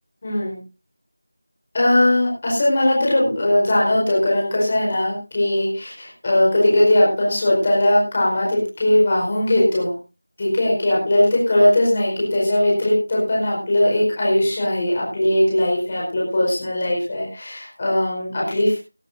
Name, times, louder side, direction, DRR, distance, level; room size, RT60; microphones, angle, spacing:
voice 1, 0.2-0.6 1.7-10.0 10.4-18.8, left 1 dB, 20° left, -4 dB, 4.7 m, -19 dB
19.0 x 13.0 x 2.7 m, 0.30 s
figure-of-eight pair, 175°, 0 cm